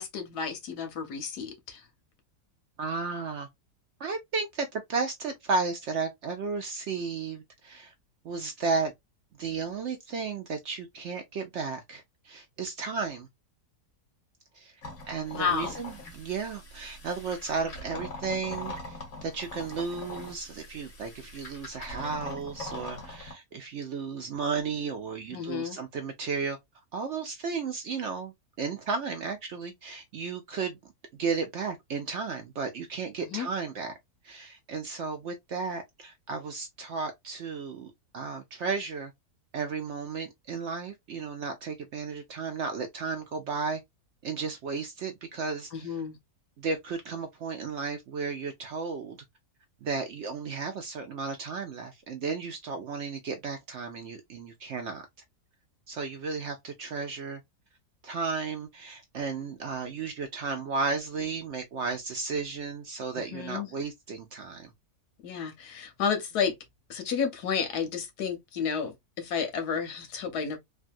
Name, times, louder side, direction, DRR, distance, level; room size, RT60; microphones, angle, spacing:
voice 1, 0.0-1.8 15.3-15.8 25.3-25.8 33.2-33.5 45.7-46.2 63.3-63.7 65.2-66.5 66.9-70.6, left 6 dB, 85° left, 1.4 m, -31 dB
voice 2, 2.8-3.5 4.0-7.9 8.2-8.9 9.4-13.3 14.5-14.7 15.1-26.6 26.9-30.9 31.2-34.0 34.2-39.1 39.5-43.8 44.2-45.9 46.6-49.2 49.8-55.0 55.9-57.4 58.0-64.7, right 4 dB, 70° right, 0.7 m, -34 dB
sound 1, 14.8-23.3, left 2 dB, 65° left, 1.6 m, -42 dB
3.2 x 2.3 x 2.5 m
omnidirectional pair, 1.6 m